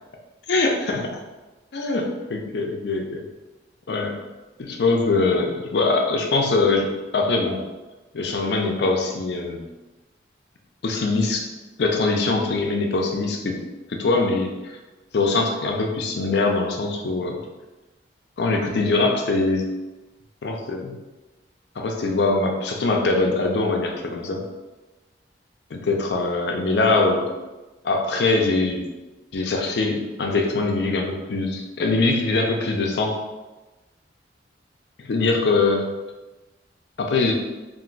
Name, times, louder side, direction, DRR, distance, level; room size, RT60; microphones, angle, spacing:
voice 1, 0.5-1.1 1.7-3.2 3.9-4.2 4.6-7.6 8.1-9.6 10.8-11.5 11.8-13.6 13.9-14.8 15.1-17.4 18.4-19.6 20.4-21.0 21.8-24.4 25.7-27.2 27.8-28.8 29.3-33.2 35.0-35.9 37.0-37.3, left 3 dB, 65° left, 2 dB, 0.4 m, -22 dB
2.5 x 2.3 x 3.8 m, 1.1 s
head